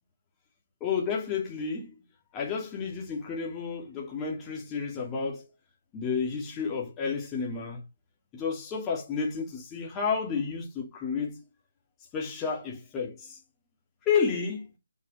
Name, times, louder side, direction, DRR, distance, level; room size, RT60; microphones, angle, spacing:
voice 1, 0.8-1.9 2.3-5.4 5.9-7.8 8.3-11.4 12.1-13.4 14.1-14.7, left 5 dB, 15° left, 2.5 m, -31 dB
7.5 x 6.4 x 3.3 m
figure-of-eight pair, 155°, 0 cm